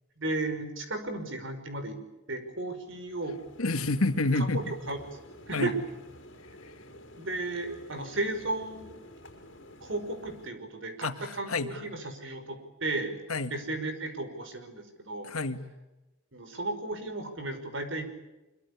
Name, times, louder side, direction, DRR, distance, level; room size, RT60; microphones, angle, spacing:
voice 1, 0.2-2.0 2.3-3.4 4.4-5.2 5.5-5.8 7.2-9.0 9.8-13.2 13.5-15.3 16.3-18.1, right 2 dB, 60° right, 8 dB, 5.5 m, -34 dB
sound 1, 2.7-10.5, left 1 dB, 60° left, 5.4 m, -51 dB
voice 2, 3.6-4.7 5.5-5.7 11.0-11.7 13.3-13.5 15.2-15.6, left 2 dB, 90° left, 9 dB, 2.1 m, -29 dB
25.5 x 24.0 x 8.5 m, 1.0 s
head